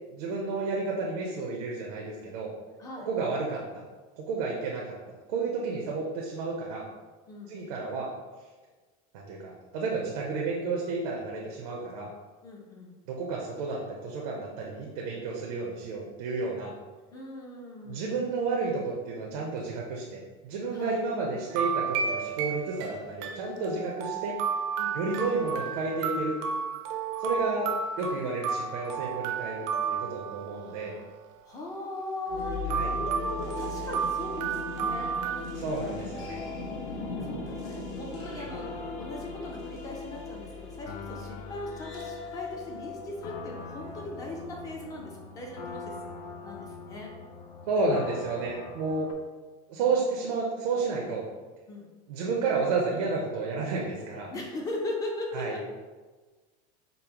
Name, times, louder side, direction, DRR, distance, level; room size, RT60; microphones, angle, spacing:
voice 1, 0.1-2.5 3.0-3.6 4.2-5.0 5.3-6.9 7.5-8.1 9.1-12.1 13.1-16.7 17.8-24.4 24.9-26.4 27.2-27.7 28.0-31.0 32.7-32.9 35.6-36.4 38.3-38.5 47.7-49.1 49.7-51.3 52.1-54.3 55.3-55.6, right 3 dB, 85° right, -2 dB, 0.7 m, -31 dB
voice 2, 12.4-13.0 17.1-18.0 20.7-21.0 24.8-25.0 30.5-31.1 31.4-36.6 37.2-38.7 39.0-46.1 46.4-47.1 49.8-49.9 51.7-51.9 54.3-55.7, left 2 dB, 20° left, -1 dB, 0.4 m, -39 dB
sound 1, 21.5-30.9 32.7-35.4, right 6 dB, 50° right, 0.5 m, -32 dB
sound 2, 32.3-44.1, left 4 dB, 60° left, 0.9 m, -39 dB
sound 3, 38.5-49.1, left 4 dB, 85° left, 0.5 m, -44 dB
5.2 x 2.0 x 2.9 m, 1.3 s
supercardioid pair, 165°, 19 cm